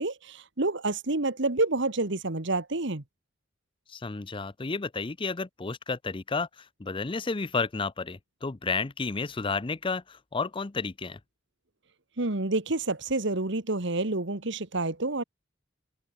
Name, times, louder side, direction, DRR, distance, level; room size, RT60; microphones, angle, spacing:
voice 1, 0.0-3.0 12.2-15.2, right 2 dB, 65° right, 1.8 m, -28 dB
voice 2, 3.9-11.2, left 4 dB, 25° left, 0.6 m, -32 dB
head